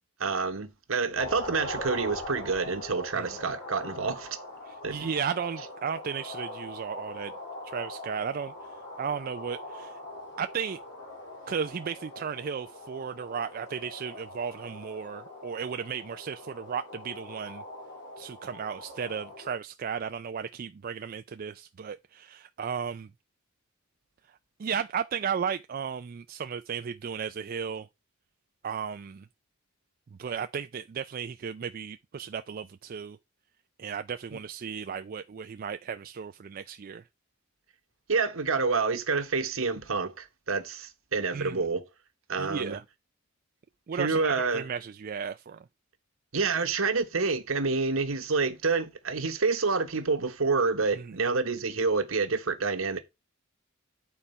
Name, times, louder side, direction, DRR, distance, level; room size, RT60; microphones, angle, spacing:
voice 1, 0.2-4.4 4.8-5.1 38.1-41.9 42.3-42.8 43.9-44.7 46.3-53.0, right 4 dB, 70° right, 1.2 m, -28 dB
sound 1, 1.2-19.6, left 1 dB, 55° left, 4.5 m, -42 dB
voice 2, 4.9-7.3 7.6-8.5 9.0-9.9 10.4-10.8 11.5-17.6 18.2-23.1 24.6-27.9 28.6-29.3 30.2-33.2 33.8-37.0 41.3-41.6 42.4-42.8 43.9-45.6 50.9-51.1, right 7 dB, 45° right, 0.3 m, -34 dB
8.8 x 4.3 x 5.4 m
head